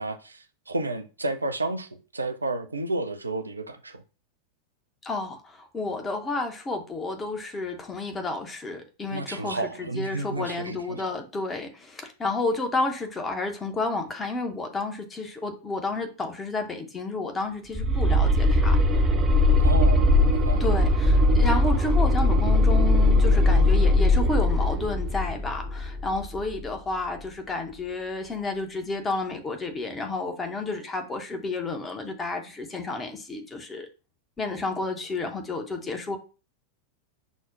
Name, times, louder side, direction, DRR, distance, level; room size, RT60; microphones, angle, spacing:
voice 1, 0.0-4.0 9.1-11.1 19.6-20.6, right 2 dB, 80° right, 0.4 m, -31 dB
voice 2, 5.0-18.8 20.6-33.9 34.4-36.2, left 3 dB, 20° left, 0.7 m, -31 dB
sound 1, 17.7-26.6, left 1 dB, 25° right, 0.5 m, -20 dB
6.0 x 2.1 x 2.5 m
figure-of-eight pair, 90°, 0 cm